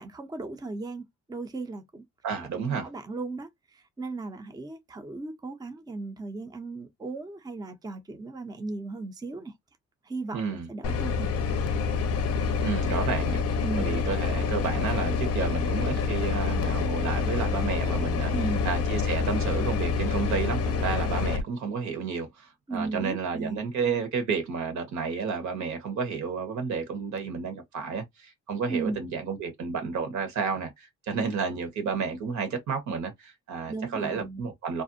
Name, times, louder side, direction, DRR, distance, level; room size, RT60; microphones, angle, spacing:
voice 1, 0.0-2.0 2.6-9.5 10.0-11.3 13.6-13.9 18.3-18.6 22.7-23.6 28.7-29.0 33.7-34.4, right 3 dB, 15° right, 0.5 m, -36 dB
voice 2, 2.2-2.9 10.3-10.7 12.6-13.4 13.8-18.3 18.6-34.8, right 5 dB, 70° right, 1.1 m, -31 dB
sound 1, 10.8-21.4, left 5 dB, 55° left, 0.5 m, -27 dB
2.5 x 2.0 x 2.5 m
cardioid pair, 90°, 30 cm